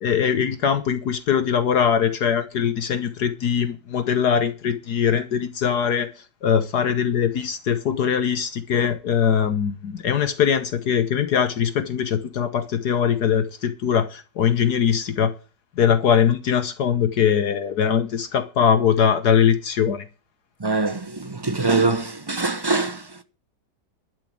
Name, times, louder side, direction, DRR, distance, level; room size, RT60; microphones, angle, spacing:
voice 1, 0.0-6.1 6.4-15.3 15.8-20.0, left 8 dB, 65° left, 1.6 m, -21 dB
voice 2, 20.6-23.2, right 3 dB, 20° right, 0.6 m, -23 dB
12.0 x 6.6 x 8.6 m
omnidirectional pair, 1.9 m